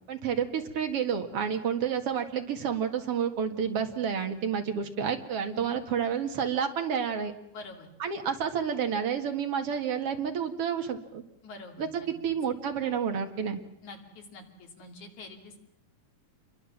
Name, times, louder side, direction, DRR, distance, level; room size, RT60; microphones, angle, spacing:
voice 1, 0.1-7.3 8.0-11.2 11.8-13.6, right 7 dB, 50° right, 5 dB, 2.6 m, -30 dB
voice 2, 7.5-7.9 11.4-12.1 13.8-15.6, left 3 dB, 70° left, 3 dB, 4.4 m, -46 dB
28.0 x 22.5 x 7.4 m, 0.79 s
omnidirectional pair, 3.5 m